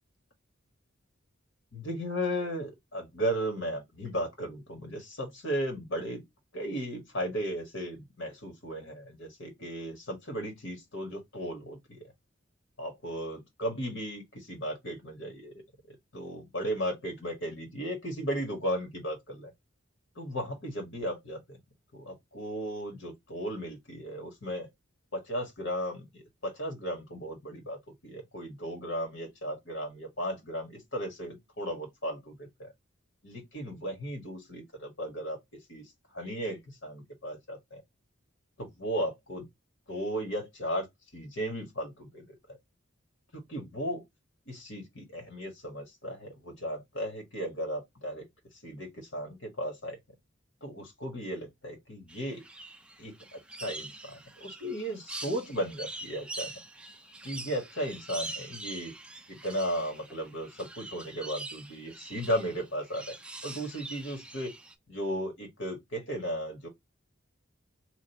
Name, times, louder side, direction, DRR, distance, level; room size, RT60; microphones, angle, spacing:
voice 1, 1.7-6.2 6.5-12.1 12.8-15.5 15.9-19.5 20.1-21.6 21.9-24.7 25.1-32.7 33.2-37.8 38.6-39.5 39.9-40.9 41.1-42.2 43.3-44.0 44.5-48.2 48.6-50.0 50.6-52.4 53.0-56.5 57.2-58.9 59.3-63.1 63.4-64.5 64.9-66.7, equal, 65° left, 1.6 m, -35 dB
sound 1, 52.1-64.7, right 2 dB, 5° right, 0.3 m, -44 dB
3.2 x 2.6 x 4.1 m
head